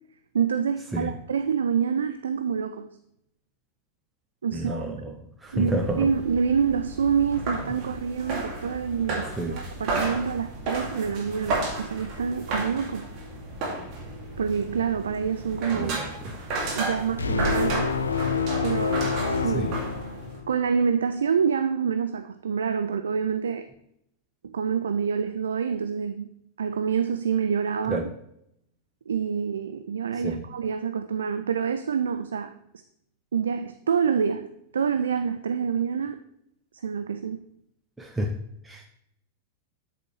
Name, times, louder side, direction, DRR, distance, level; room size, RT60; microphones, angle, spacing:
voice 1, 0.3-2.9 4.4-4.8 5.5-13.0 14.4-15.9 16.7-17.9 18.6-19.7 20.5-23.7 24.5-26.3 26.6-28.1 29.1-32.5 33.3-36.2 36.8-37.4, right 6 dB, 70° right, 10 dB, 0.4 m, -27 dB
voice 2, 4.5-5.1 5.4-6.1 9.4-9.6 15.7-16.3 19.5-19.8 27.9-28.1 30.2-30.4 38.0-38.3 38.7-38.9, right 1 dB, 10° right, 3 dB, 0.7 m, -30 dB
sound 1, 5.5-20.4, right 2 dB, 40° right, 2.3 m, -33 dB
sound 2, 17.2-20.7, left 5 dB, 75° left, 0.5 m, -27 dB
8.3 x 6.9 x 3.2 m, 0.76 s
figure-of-eight pair, 90°, 0 cm